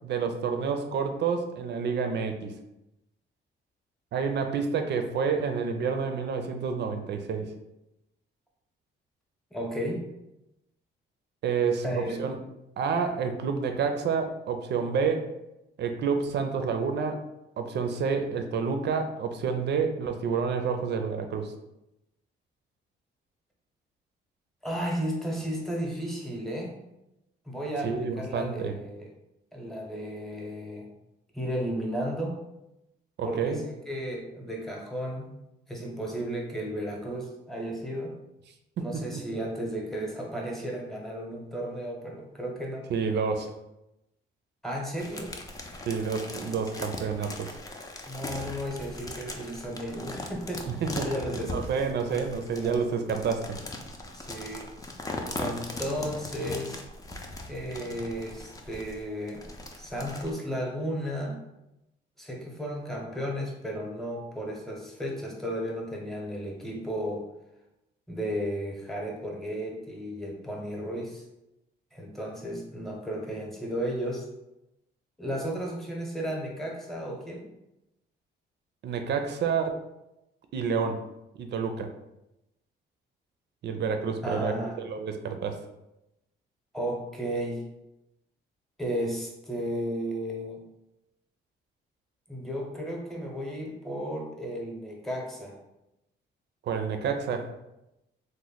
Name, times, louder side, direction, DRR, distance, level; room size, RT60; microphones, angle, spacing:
voice 1, 0.0-2.5 4.1-7.5 11.4-12.4 12.8-15.3 15.8-17.2 17.6-21.5 27.8-28.7 33.2-33.6 38.8-38.9 39.1-39.2 42.9-43.6 45.9-47.3 50.7-51.1 51.5-53.6 78.8-79.8 80.5-81.0 81.3-81.9 83.6-85.6 96.6-97.5, right 5 dB, 60° right, 6 dB, 0.5 m, -29 dB
voice 2, 9.5-10.1 11.8-12.2 24.6-26.8 27.5-29.1 29.5-30.9 31.3-32.4 33.2-35.4 35.7-38.2 38.8-42.9 44.6-45.3 48.1-50.6 51.0-51.5 52.1-52.7 54.1-54.7 55.4-56.8 57.5-59.4 59.7-61.4 62.2-67.2 68.1-71.2 71.9-74.3 75.2-77.5 84.2-84.8 86.7-87.6 88.8-90.6 92.3-95.6, equal, ahead, -1 dB, 0.9 m, -34 dB
sound 1, 45.0-60.3, left 2 dB, 20° left, 0.5 m, -39 dB
3.1 x 2.2 x 3.9 m, 0.91 s
cardioid pair, 90°, 20 cm